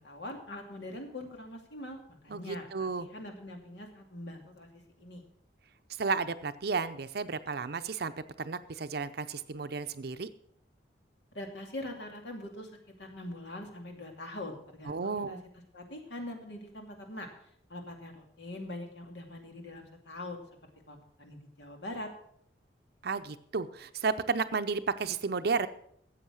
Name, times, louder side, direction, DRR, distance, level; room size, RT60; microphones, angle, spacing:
voice 1, 0.0-5.2 11.3-12.7 13.0-15.4 15.7-17.3 17.7-20.4 20.9-22.1, left 1 dB, 75° left, 3 dB, 2.5 m, -43 dB
voice 2, 2.3-3.1 6.0-8.1 8.4-10.3 14.9-15.4 23.0-25.7, right 4 dB, 60° right, 10 dB, 0.6 m, -32 dB
13.5 x 8.1 x 6.2 m, 0.69 s
head